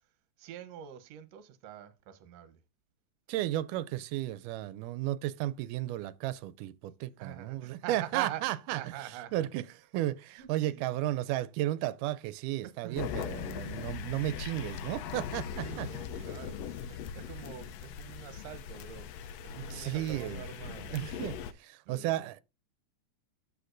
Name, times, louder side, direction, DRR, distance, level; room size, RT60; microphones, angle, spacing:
voice 1, 0.4-2.6 7.2-9.5 10.0-11.0 12.6-13.3 15.6-19.1 19.4-21.0 21.9-22.3, right 11 dB, 65° right, 1.9 m, -44 dB
voice 2, 3.3-8.8 9.3-9.6 9.9-15.9 19.5-20.4 20.9-22.4, right 14 dB, 90° right, 2.1 m, -34 dB
sound 1, 13.0-21.5, left 8 dB, 75° left, 1.6 m, -40 dB
13.5 x 4.7 x 2.5 m
omnidirectional pair, 3.6 m